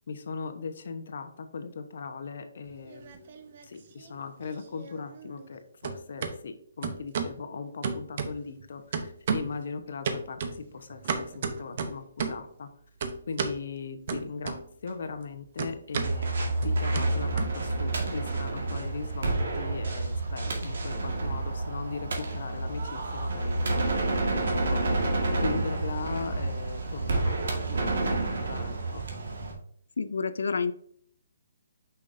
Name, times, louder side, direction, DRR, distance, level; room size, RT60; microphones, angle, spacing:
voice 1, 0.1-12.7 13.3-24.8 25.3-29.0, left 5 dB, 60° left, 8 dB, 0.9 m, -39 dB
sound 1, 2.7-3.7 4.0-5.6 5.8-6.3 6.8-7.4 7.8-8.6 8.9-9.6 10.0-12.5 13.0-13.6 14.1-14.9 15.2-18.0, right 5 dB, 45° right, 0.8 m, -34 dB
sound 2, 16.0-29.5, right 2 dB, 70° right, 1.7 m, -29 dB
voice 2, 30.0-30.7, left 5 dB, 80° left, 13 dB, 0.5 m, -28 dB
6.3 x 5.7 x 2.6 m, 0.64 s
hypercardioid pair, 160°, 0 cm